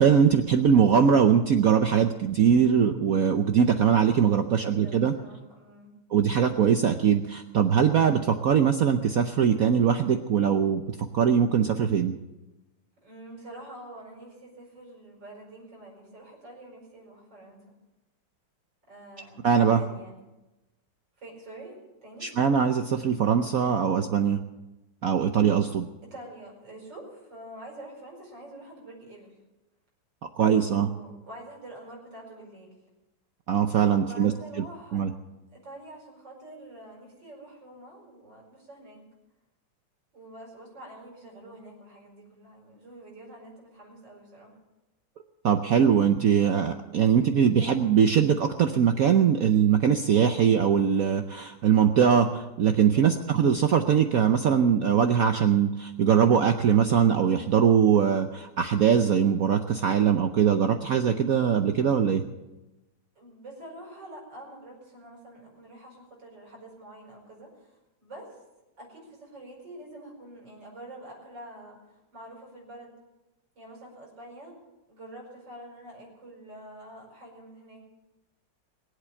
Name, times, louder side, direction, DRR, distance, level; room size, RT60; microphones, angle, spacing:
voice 1, 0.0-5.1 6.1-10.8 11.1-12.1 19.4-19.8 22.2-24.4 25.0-25.9 30.4-30.9 33.5-34.3 34.9-35.1 45.4-62.2, right 7 dB, 75° right, 7 dB, 0.8 m, -22 dB
voice 2, 4.5-5.9 13.0-17.8 18.9-20.2 21.2-22.3 26.0-29.4 30.6-32.8 33.9-35.1 35.5-39.0 40.1-44.5 52.9-53.2 63.2-68.4 68.8-72.9 73.6-74.5 74.9-77.9, right 1 dB, 50° right, -2 dB, 5.6 m, -46 dB
21.5 x 8.3 x 7.0 m, 1.0 s
omnidirectional pair, 2.4 m